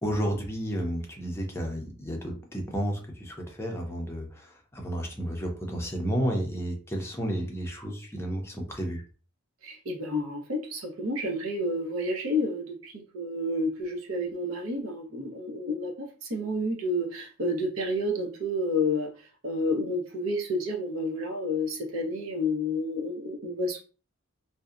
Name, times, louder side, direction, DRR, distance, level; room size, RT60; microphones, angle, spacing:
voice 1, 0.0-9.0, equal, 10° left, 1 dB, 0.5 m, -32 dB
voice 2, 9.6-23.8, left 1 dB, 65° right, 0 dB, 0.7 m, -30 dB
2.6 x 2.1 x 2.4 m, 0.36 s
head